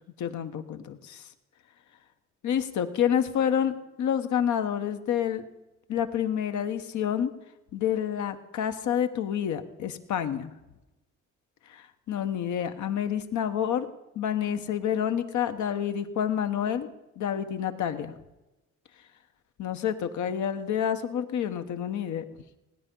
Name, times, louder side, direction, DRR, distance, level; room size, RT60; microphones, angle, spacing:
voice 1, 0.2-1.2 2.4-5.4 5.9-7.3 7.7-10.5 11.7-13.9 14.1-16.9 17.2-18.1 19.6-22.2, left 9 dB, 75° left, 8 dB, 1.1 m, -28 dB
18.0 x 10.0 x 5.4 m, 1.0 s
cardioid pair, 90°, 30 cm